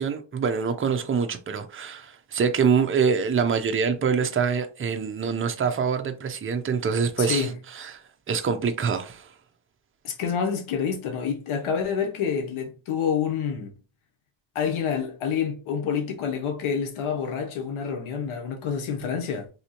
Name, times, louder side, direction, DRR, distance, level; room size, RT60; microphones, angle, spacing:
voice 1, 0.0-8.0 8.3-9.3, right 6 dB, 25° right, 0.5 m, -25 dB
voice 2, 7.2-7.5 10.0-13.7 14.5-19.5, left 7 dB, 90° left, 0.8 m, -28 dB
3.4 x 2.7 x 2.8 m
cardioid pair, 90°, 48 cm